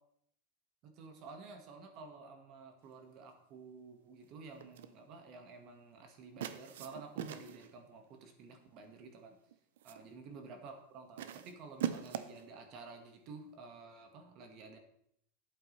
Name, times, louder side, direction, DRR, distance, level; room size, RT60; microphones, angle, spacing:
voice 1, 0.8-9.4 9.8-14.8, right 4 dB, 35° right, 5 dB, 1.5 m, -51 dB
sound 1, 4.6-5.0 6.4-7.7 8.8-9.1 9.5-10.1 11.2-12.5, right 10 dB, 80° right, 0.7 m, -41 dB
12.0 x 8.3 x 3.2 m, 0.69 s
supercardioid pair, 165°, 0 cm